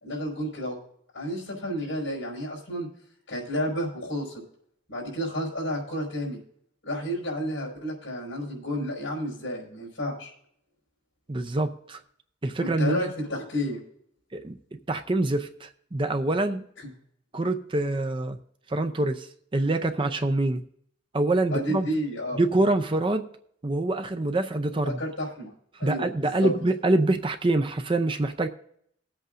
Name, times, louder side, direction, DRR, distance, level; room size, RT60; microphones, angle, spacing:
voice 1, 0.0-0.8 1.1-2.9 3.3-4.4 4.9-6.4 6.8-10.3 12.6-13.8 21.5-22.4 24.8-25.5 25.8-26.1 26.3-26.5, equal, 70° left, -7 dB, 4.9 m, -31 dB
voice 2, 11.3-12.0 12.4-13.1 14.3-16.6 17.3-18.4 18.7-20.6 21.1-21.9 22.3-23.3 23.6-25.0 25.7-28.5, right 2 dB, 25° right, 8 dB, 0.5 m, -25 dB
20.0 x 8.1 x 2.5 m, 0.66 s
head